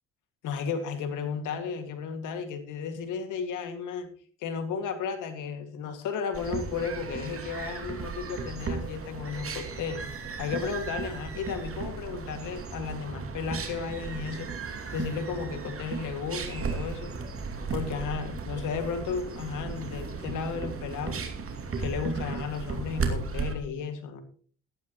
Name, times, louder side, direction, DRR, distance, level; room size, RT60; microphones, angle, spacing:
voice 1, 0.4-4.1 4.4-10.1 10.4-14.5 14.9-17.1 17.7-21.3 21.8-24.2, left 6 dB, 85° left, 7 dB, 2.2 m, -34 dB
sound 1, 6.3-23.5, right 5 dB, 45° right, 2.6 m, -35 dB
16.0 x 12.0 x 3.1 m, 0.42 s
cardioid pair, 90°, 30 cm